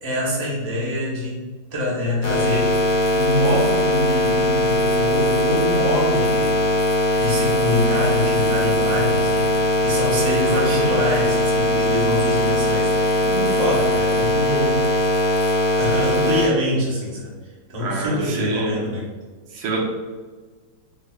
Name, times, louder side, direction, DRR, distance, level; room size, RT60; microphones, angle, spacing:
voice 1, 0.0-1.4 1.7-2.8 3.1-6.6 7.2-14.9 15.8-17.3 17.7-19.0, left 1 dB, 60° right, -6 dB, 0.4 m, -25 dB
sound 1, 2.2-16.5, equal, 90° left, 1.5 m, -20 dB
voice 2, 10.5-10.9 17.8-18.8 19.5-19.8, right 3 dB, 80° right, -2 dB, 1.5 m, -27 dB
5.0 x 2.1 x 2.3 m, 1.4 s
omnidirectional pair, 2.2 m